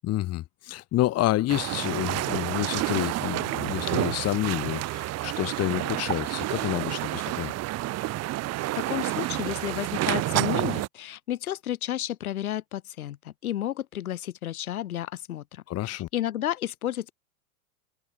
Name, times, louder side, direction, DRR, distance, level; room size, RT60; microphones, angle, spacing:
voice 1, 0.0-7.5 15.7-16.1, left 15 dB, 35° left, 4.5 m, -29 dB
sound 1, 1.5-10.9, right 16 dB, 35° right, 3.2 m, -29 dB
voice 2, 8.7-17.1, left 12 dB, 75° left, 6.5 m, -32 dB
hypercardioid pair, 125°, 43 cm